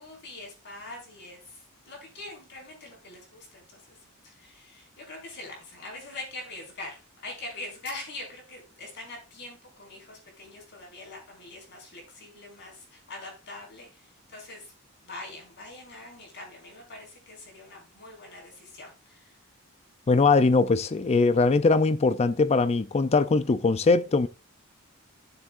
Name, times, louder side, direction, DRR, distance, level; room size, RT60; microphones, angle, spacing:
voice 1, 0.0-4.0 4.2-14.7 15.0-19.4, left 2 dB, 50° left, 4.8 m, -43 dB
voice 2, 20.1-24.3, left 3 dB, 30° left, 0.4 m, -21 dB
15.0 x 7.3 x 2.5 m
head